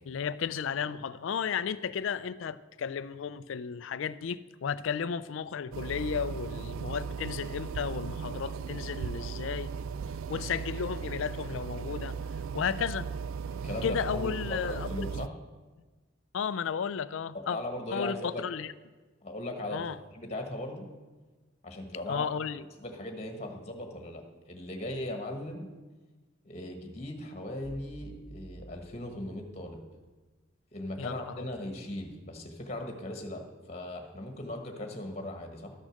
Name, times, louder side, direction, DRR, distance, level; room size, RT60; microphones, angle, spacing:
voice 1, 0.1-9.7 10.3-12.2 12.5-13.1 13.8-15.1 16.3-17.6 17.9-18.7 19.7-20.0 22.1-22.6 31.0-31.4, left 7 dB, 70° left, 0.4 m, -33 dB
Home Oxygen Concentrator, 5.7-15.3, right 6 dB, 85° right, 0.3 m, -37 dB
voice 2, 13.6-15.3 17.3-18.4 19.2-19.8 20.1-20.8 21.6-22.3 22.8-24.2 24.5-25.7 26.4-29.8 30.7-35.7, left 1 dB, 30° left, 1.4 m, -38 dB
sound 1, 27.6-29.8, right 1 dB, 60° right, 1.3 m, -50 dB
13.0 x 6.3 x 6.5 m
head